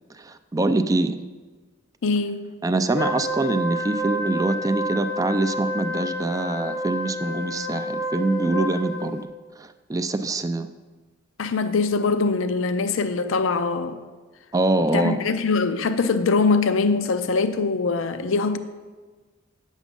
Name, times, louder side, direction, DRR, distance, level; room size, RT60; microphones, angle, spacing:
voice 1, 0.1-1.2 2.6-9.2 9.6-10.7 14.5-15.2, right 2 dB, 15° right, 10 dB, 0.3 m, -24 dB
voice 2, 2.0-2.5 11.4-14.0 14.8-18.6, left 4 dB, 70° left, 11 dB, 0.5 m, -23 dB
Wind instrument woodwind instrument, 2.9-9.2, equal, 55° left, 0.9 m, -29 dB
9.2 x 7.3 x 5.3 m, 1.3 s
head